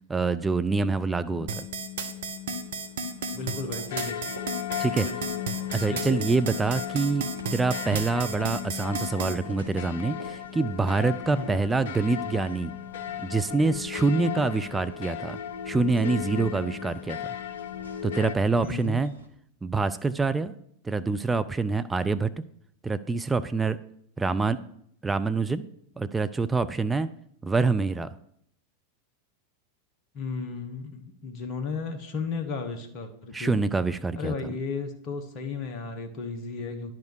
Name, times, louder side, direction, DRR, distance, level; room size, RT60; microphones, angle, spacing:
voice 1, 0.1-1.6 4.8-5.1 5.7-12.7 13.2-15.4 15.7-17.2 18.0-19.1 19.6-20.5 20.8-22.3 22.8-23.8 24.2-24.6 25.0-25.6 26.0-27.1 27.4-28.1 33.3-34.5, right 3 dB, 10° right, 11 dB, 0.4 m, -26 dB
sound 1, 1.3-18.3, left 10 dB, 55° left, 0.6 m, -36 dB
sound 2, 1.5-9.3, right 4 dB, 60° right, 1.0 m, -33 dB
voice 2, 3.3-4.3 5.0-5.3 5.9-6.2 11.3-11.6 18.6-19.0 30.1-33.7 34.1-36.9, left 4 dB, 35° left, 4 dB, 1.3 m, -34 dB
sound 3, 3.3-19.3, right 1 dB, 85° right, 1.2 m, -48 dB
10.5 x 5.0 x 6.4 m, 0.68 s
figure-of-eight pair, 90°, 0 cm